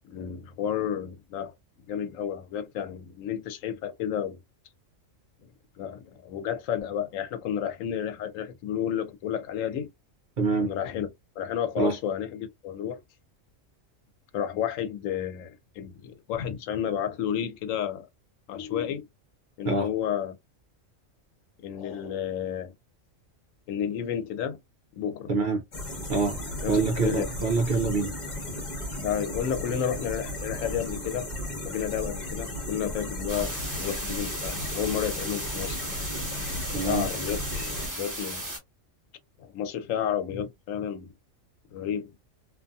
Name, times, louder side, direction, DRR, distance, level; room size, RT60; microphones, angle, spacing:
voice 1, 0.0-1.5 1.9-4.4 5.8-9.9 10.6-11.1 11.4-13.0 14.3-18.1 18.5-19.1 19.6-20.3 21.6-22.7 23.7-24.6 25.0-25.3 26.6-27.3 29.0-36.0 36.8-38.5 39.4-41.1 41.7-42.1, left 9 dB, 85° left, 1.0 m, -31 dB
voice 2, 10.4-10.7 11.8-12.0 19.6-19.9 25.3-25.6 26.1-26.4 26.7-28.1 36.7-37.1, right 3 dB, 55° right, 0.5 m, -25 dB
sound 1, 25.7-37.9, left 1 dB, 40° left, 1.0 m, -35 dB
sound 2, 33.3-38.6, right 1 dB, 15° right, 0.9 m, -36 dB
2.6 x 2.5 x 2.3 m
omnidirectional pair, 1.3 m